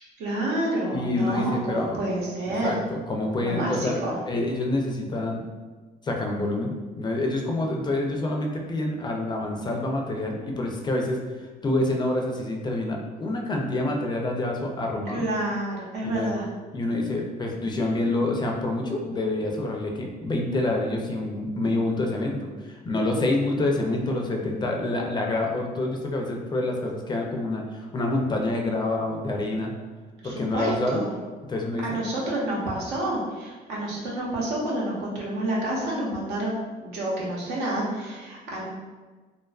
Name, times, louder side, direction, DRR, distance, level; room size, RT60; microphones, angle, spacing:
voice 1, 0.2-2.8 3.4-4.2 15.1-16.5 30.2-31.1 31.8-36.5 36.8-38.6, right 1 dB, 85° right, -4 dB, 0.8 m, -29 dB
voice 2, 0.9-2.0 2.5-4.0 4.3-5.4 6.0-15.2 16.0-16.3 16.7-29.7 30.2-31.1 31.5-32.0, left 2 dB, 25° left, 1 dB, 0.4 m, -27 dB
2.5 x 2.3 x 2.3 m, 1.3 s
cardioid pair, 110°, 17 cm